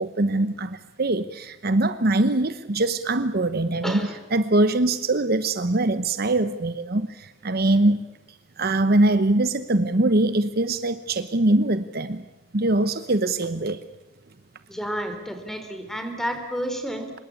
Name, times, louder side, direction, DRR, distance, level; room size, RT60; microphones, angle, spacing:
voice 1, 0.0-4.0 4.3-8.0 8.6-12.2 12.5-13.8, right 2 dB, 55° right, 11 dB, 1.0 m, -22 dB
voice 2, 3.8-4.2 14.7-17.1, equal, ahead, 7 dB, 3.6 m, -31 dB
25.5 x 22.0 x 8.5 m, 1.0 s
head